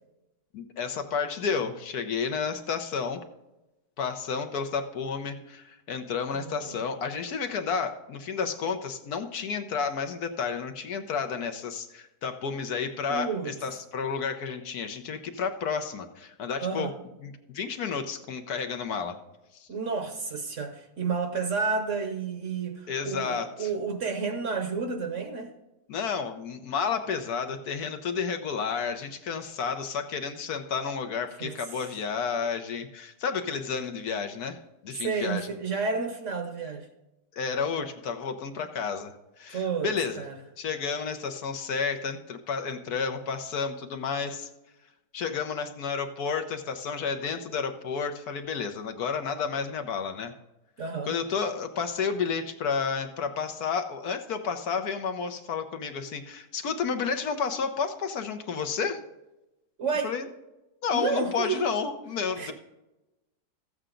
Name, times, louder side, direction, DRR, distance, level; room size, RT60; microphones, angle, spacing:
voice 1, 0.5-3.2 4.0-16.9 17.2-19.2 19.5-19.7 22.9-23.7 25.9-34.6 34.8-35.5 37.3-40.2 40.6-44.5 45.1-50.3 51.1-59.0 60.0-60.3 60.8-62.5, left 6 dB, 70° left, 1.3 m, -31 dB
voice 2, 6.3-6.8 13.1-13.5 16.6-16.9 19.7-25.5 31.4-31.5 35.0-36.9 39.5-40.3 50.8-51.1 59.8-60.1 60.9-61.6 62.4-62.5, right 5 dB, 50° right, 1.2 m, -31 dB
14.0 x 8.0 x 3.8 m
omnidirectional pair, 1.8 m